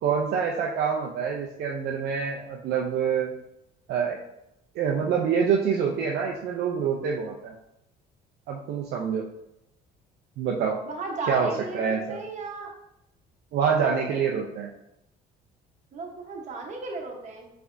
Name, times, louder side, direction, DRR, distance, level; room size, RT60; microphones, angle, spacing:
voice 1, 0.0-3.3 3.9-4.2 4.7-7.5 8.5-9.3 10.4-10.8 11.3-12.2 13.5-14.7, right 6 dB, 70° right, 0 dB, 0.5 m, -26 dB
voice 2, 10.9-12.7 13.8-14.2 15.9-17.5, right 3 dB, 45° right, 0 dB, 1.1 m, -35 dB
4.8 x 3.3 x 2.6 m, 0.83 s
cardioid pair, 110°, 17 cm